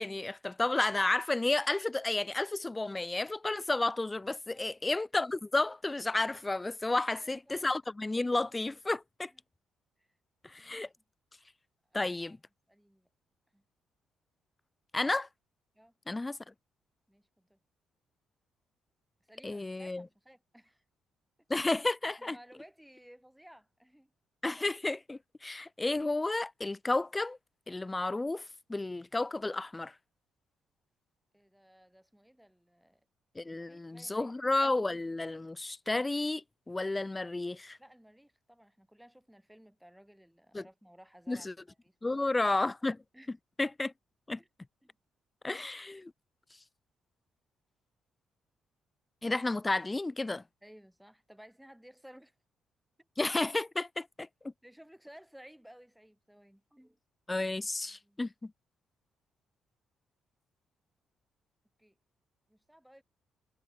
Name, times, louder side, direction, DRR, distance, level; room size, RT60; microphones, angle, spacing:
voice 1, 0.0-9.3 10.4-10.9 11.9-12.4 14.9-15.3 16.1-16.4 19.4-20.0 21.5-22.4 24.4-27.4 27.7-28.4 28.7-29.9 33.4-37.8 40.5-40.6 41.3-41.5 42.0-43.0 43.6-43.9 44.3-44.4 45.4-46.1 49.2-50.4 53.2-54.3 57.3-58.5, left 2 dB, 15° left, 0.8 m, -32 dB
voice 2, 4.5-4.8 6.9-7.6 9.3-9.4 10.0-10.1 10.6-11.0 11.9-12.4 12.7-13.1 13.5-13.6 15.7-15.9 17.1-17.6 19.2-20.8 22.2-24.1 31.3-33.0 33.4-34.5 37.8-42.3 43.1-43.3 44.4-44.5 44.8-45.0 50.6-52.3 53.0-53.1 54.6-57.0 57.8-58.2 61.8-61.9 62.5-63.0, equal, 5° right, 6.6 m, -57 dB
cardioid pair, 90°, 0 cm